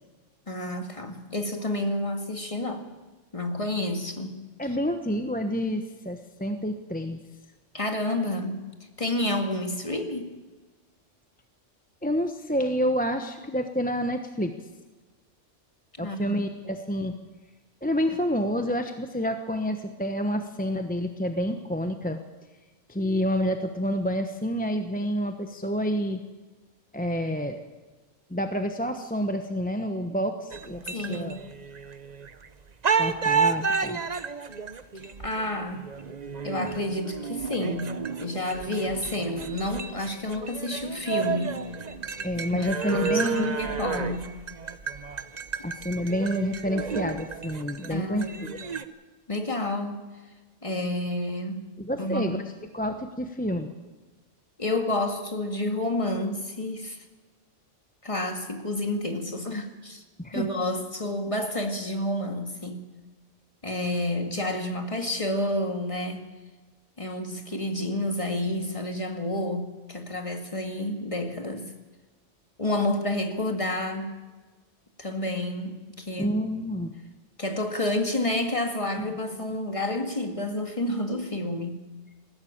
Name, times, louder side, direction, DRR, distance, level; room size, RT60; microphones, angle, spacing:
voice 1, 0.5-2.9 3.3-4.4 7.7-8.6 9.0-10.3 16.0-16.4 30.8-31.4 35.2-35.9 36.4-41.6 42.5-44.3 47.9-48.5 49.3-50.1 50.6-51.7 52.0-52.4 54.6-57.0 58.0-60.0 60.3-62.8 63.6-66.2 67.0-71.7 72.6-74.2 75.0-76.3 77.4-81.8, left 1 dB, 25° left, 4 dB, 2.1 m, -29 dB
voice 2, 4.6-7.2 12.0-14.5 16.0-17.2 17.8-22.2 22.9-26.2 26.9-27.6 28.3-31.4 33.0-34.0 42.2-43.8 45.6-48.6 51.8-52.4 52.7-53.7 60.2-60.5 76.2-76.9 79.0-79.1, equal, 10° left, 6 dB, 0.9 m, -28 dB
sound 1, 30.5-32.5 32.8-48.8, right 6 dB, 40° right, 0.9 m, -31 dB
20.5 x 16.5 x 8.8 m, 1.3 s
omnidirectional pair, 1.3 m